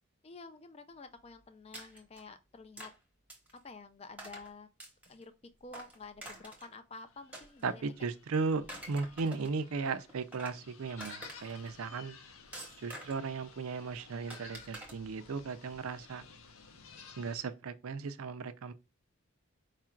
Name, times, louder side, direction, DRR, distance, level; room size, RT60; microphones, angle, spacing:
voice 1, 0.2-2.9 3.5-4.7 5.1-5.3 5.6-7.9 11.9-12.0, left 3 dB, 30° left, 0.4 m, -50 dB
sound 1, 1.7-2.2 2.8-2.9 3.3-3.6 4.2-4.5 4.8-5.2 5.7-6.7 7.3-8.0 8.5-9.6 10.1-10.6 11.0-11.7 12.5-13.3 14.3-14.9, right 1 dB, 5° right, 0.9 m, -47 dB
sound 2, 7.0-17.3, left 5 dB, 70° left, 0.7 m, -55 dB
voice 2, 7.6-12.2 12.8-16.2 17.2-18.7, right 4 dB, 80° right, 0.5 m, -36 dB
4.7 x 2.4 x 4.3 m
head